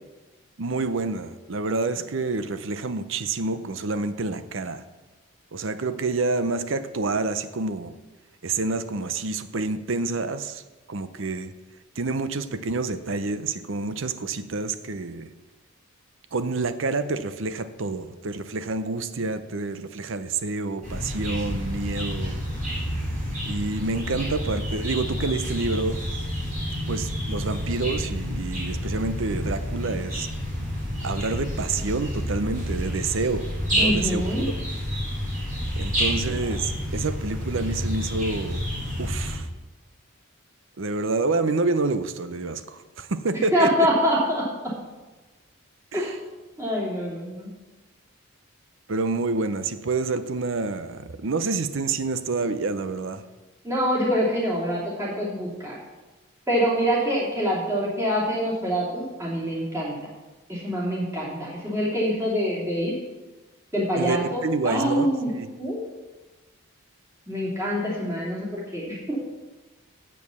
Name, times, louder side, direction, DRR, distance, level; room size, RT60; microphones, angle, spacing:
voice 1, 0.6-4.8 5.5-7.9 8.4-10.6 10.9-11.5 12.0-15.3 16.3-22.4 23.4-26.0 26.9-30.3 31.0-34.4 35.8-38.6 39.0-39.5 40.8-43.7 45.9-46.2 48.9-53.2 63.9-65.1 65.3-65.5, right 3 dB, 60° right, 12 dB, 0.6 m, -28 dB
sound 1, 20.8-39.4, equal, 35° right, 4.0 m, -29 dB
voice 2, 33.8-34.5 43.5-44.7 45.9-46.1 46.6-47.5 53.6-55.8 56.5-60.1 60.5-62.9 63.7-65.3 65.6-65.8 67.3-69.2, equal, 15° right, -5 dB, 2.7 m, -25 dB
8.5 x 7.0 x 7.1 m, 1.2 s
head